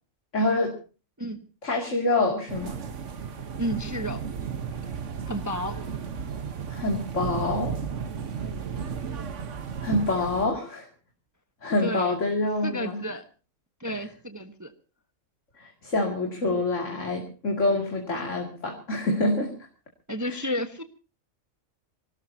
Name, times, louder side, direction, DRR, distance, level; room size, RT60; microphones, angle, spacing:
voice 1, 0.3-0.8 1.6-2.8 6.7-7.7 9.8-10.9 11.6-13.0 13.9-14.1 15.6-19.5 20.3-20.4, left 2 dB, 60° left, 1 dB, 2.9 m, -26 dB
sound 1, 2.5-10.5, right 6 dB, 60° right, 1.5 m, -34 dB
voice 2, 3.6-4.2 5.3-5.7 11.8-12.2 12.6-13.2 13.8-14.7 20.1-20.8, equal, 15° right, 8 dB, 1.0 m, -31 dB
26.0 x 18.0 x 2.8 m, 0.35 s
omnidirectional pair, 1.4 m